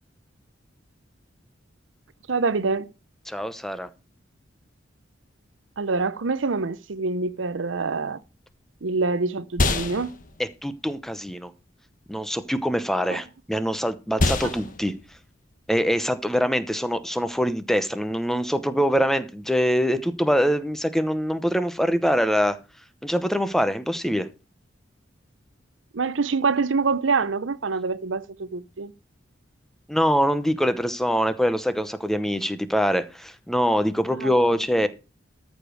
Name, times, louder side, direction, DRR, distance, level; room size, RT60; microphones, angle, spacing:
voice 1, 2.3-2.9 5.8-8.2 8.8-10.2 13.1-13.2 14.4-14.5 25.9-28.9 34.1-34.6, right 4 dB, 80° right, 0.7 m, -26 dB
voice 2, 3.3-3.9 10.6-11.5 12.1-14.9 15.7-22.6 23.0-24.3 29.9-34.9, equal, ahead, 0.9 m, -24 dB
sound 1, 8.2-17.8, left 2 dB, 45° left, 1.4 m, -31 dB
13.5 x 5.1 x 6.4 m
head